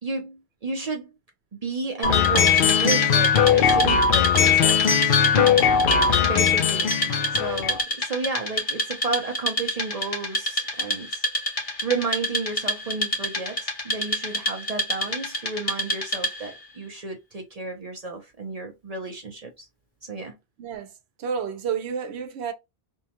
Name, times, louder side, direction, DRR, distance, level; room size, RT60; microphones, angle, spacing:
voice 1, 0.0-1.1 1.5-5.6 5.9-6.9 7.3-11.2 11.8-19.7 20.0-20.4, right 4 dB, 45° right, 0.6 m, -32 dB
sound 1, 2.0-7.8, left 7 dB, 60° left, 0.7 m, -19 dB
Wood, 2.0-16.6, equal, 35° left, 1.0 m, -29 dB
voice 2, 20.6-20.9 21.2-22.5, right 7 dB, 85° right, 0.9 m, -30 dB
2.7 x 2.2 x 2.8 m
omnidirectional pair, 1.1 m